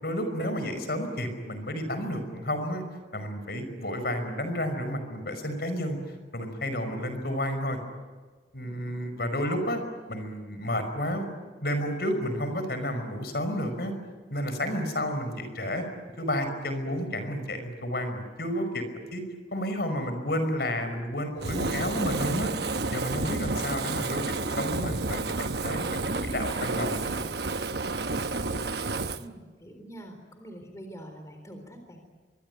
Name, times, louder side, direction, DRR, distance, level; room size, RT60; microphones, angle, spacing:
voice 1, 0.0-2.8 3.1-6.0 6.3-7.8 8.5-9.8 10.1-11.3 11.6-13.9 14.3-15.8 16.2-18.8 19.1-19.2 19.5-22.5 22.9-27.2, equal, 60° left, 8 dB, 5.4 m, -31 dB
Fire, 21.4-29.2, right 3 dB, 65° right, 1.1 m, -30 dB
voice 2, 29.1-32.0, right 1 dB, 15° left, 5 dB, 3.8 m, -45 dB
26.0 x 23.5 x 9.4 m, 1.4 s
head